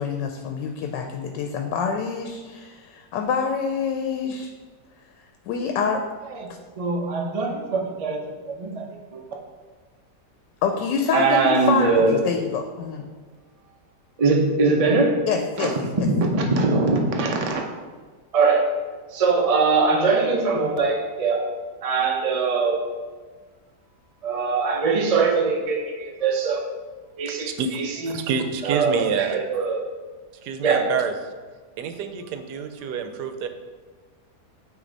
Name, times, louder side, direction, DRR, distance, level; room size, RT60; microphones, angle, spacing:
voice 1, 0.0-4.5 5.5-6.0 10.6-13.0 15.3-16.1, left 6 dB, 85° left, 4 dB, 1.2 m, -26 dB
voice 2, 6.8-8.9 9.1-9.2 11.1-12.3 14.2-15.2 15.6-17.7 18.3-18.7 19.1-21.4 21.8-22.8 24.2-26.6 27.2-28.2 28.6-29.9 30.6-30.9, right 4 dB, 60° right, 0 dB, 0.3 m, -22 dB
voice 3, 27.3-27.7 28.1-29.4 30.4-31.1 31.8-33.5, right 7 dB, 75° right, 7 dB, 1.2 m, -27 dB
9.1 x 3.0 x 3.9 m, 1.4 s
omnidirectional pair, 1.8 m